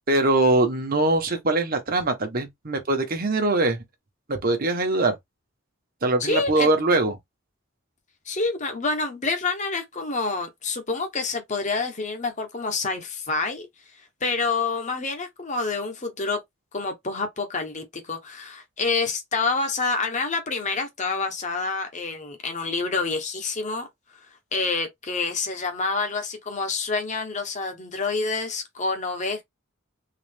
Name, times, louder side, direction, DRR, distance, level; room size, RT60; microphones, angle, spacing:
voice 1, 0.1-3.8 4.3-5.1 6.0-7.2, right 2 dB, 45° right, 1.0 m, -22 dB
voice 2, 6.2-6.7 8.3-13.7 14.2-16.4 16.7-23.9 24.5-29.4, left 3 dB, 35° left, 0.9 m, -27 dB
3.8 x 2.5 x 3.4 m
head